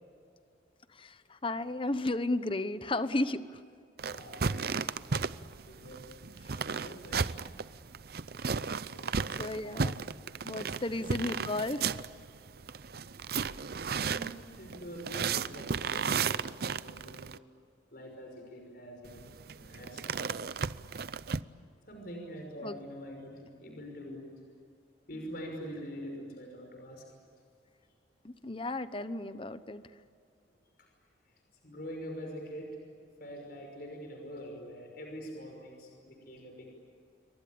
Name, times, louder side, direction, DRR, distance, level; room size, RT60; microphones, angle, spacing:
voice 1, 0.9-3.6 9.4-9.9 10.4-11.9 22.6-22.8 28.2-29.8, left 2 dB, 30° left, 12 dB, 1.0 m, -34 dB
sound 1, 4.0-17.4 19.0-21.4, right 5 dB, 55° right, 0.6 m, -35 dB
voice 2, 4.1-5.0 5.6-6.0 6.5-7.3 8.8-9.9 11.0-11.1 13.9-17.3 17.9-20.2 21.9-24.2 25.1-27.1 30.8-30.9 31.6-32.8 33.2-36.7, equal, 55° left, 2 dB, 5.8 m, -45 dB
28.0 x 24.0 x 8.7 m, 2.3 s
head